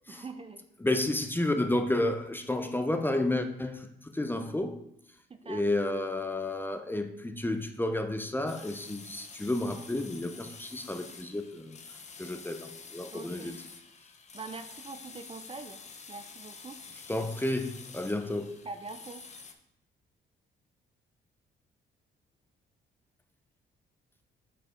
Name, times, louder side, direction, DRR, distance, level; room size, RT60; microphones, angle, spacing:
voice 1, 0.1-0.6 5.4-5.6 13.1-13.6 14.3-15.8 16.1-16.8 18.6-19.3, right 4 dB, 30° right, 8 dB, 0.6 m, -43 dB
voice 2, 0.8-4.8 5.4-11.8 12.2-13.6 17.1-18.6, left 1 dB, 10° left, 7 dB, 0.7 m, -31 dB
sound 1, 8.5-19.5, left 5 dB, 35° left, 0.9 m, -48 dB
7.5 x 4.7 x 5.0 m, 0.78 s
cardioid pair, 90°, 20 cm